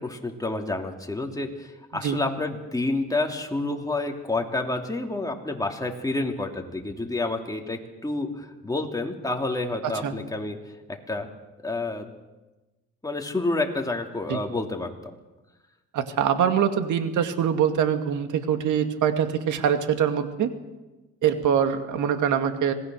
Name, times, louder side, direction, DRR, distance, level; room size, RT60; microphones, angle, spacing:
voice 1, 0.0-10.6 10.9-11.3 11.6-12.1 13.0-15.2, left 2 dB, 10° left, 2 dB, 3.1 m, -29 dB
voice 2, 9.8-10.1 14.3-14.4 15.9-20.5 21.2-22.7, right 8 dB, 75° right, 7 dB, 2.2 m, -24 dB
26.0 x 19.0 x 6.4 m, 1.1 s
cardioid pair, 90°, 30 cm